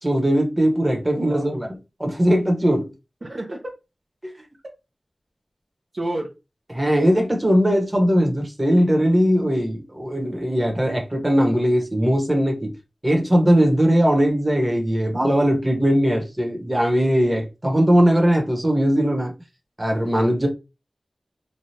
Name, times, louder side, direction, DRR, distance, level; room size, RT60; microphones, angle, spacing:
voice 1, 0.0-1.7 2.0-2.9 6.7-12.7 13.0-19.3 19.8-20.5, equal, 20° right, 1.0 m, -19 dB
voice 2, 1.1-1.6 3.2-3.6 5.9-6.3, right 1 dB, 55° right, 0.7 m, -30 dB
3.2 x 2.3 x 2.8 m
wide cardioid pair, 55°, 0 cm